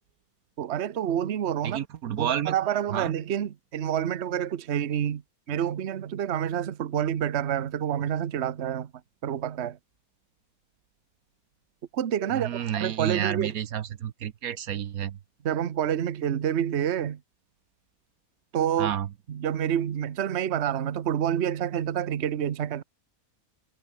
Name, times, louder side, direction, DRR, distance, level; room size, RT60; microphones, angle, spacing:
voice 1, 0.6-1.8 2.2-5.2 5.5-8.9 9.2-9.8 11.9-13.5 15.4-17.2 18.5-18.9 19.3-22.8, right 9 dB, 50° right, 1.1 m, -28 dB
voice 2, 1.6-2.6 2.9-3.1 12.3-15.2 18.8-19.1, right 10 dB, 75° right, 1.3 m, -30 dB
omnidirectional pair, 1.6 m